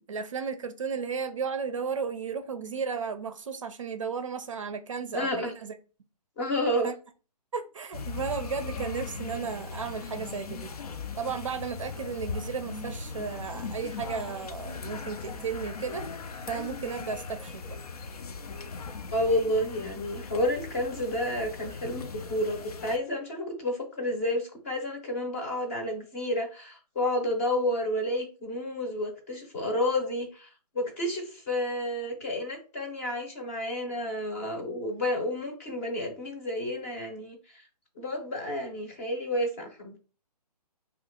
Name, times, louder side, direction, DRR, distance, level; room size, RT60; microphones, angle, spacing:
voice 1, 0.0-5.7 6.8-7.0 7.5-10.7 11.2-16.1 16.5-17.8, right 6 dB, 50° right, 0.5 m, -34 dB
voice 2, 5.1-5.5 6.4-6.9 19.1-30.5 30.7-37.6 38.0-40.0, left 1 dB, 20° left, 0.7 m, -30 dB
sound 1, 7.9-23.0, left 4 dB, 65° left, 0.5 m, -39 dB
2.8 x 2.3 x 3.6 m
hypercardioid pair, 165°, 21 cm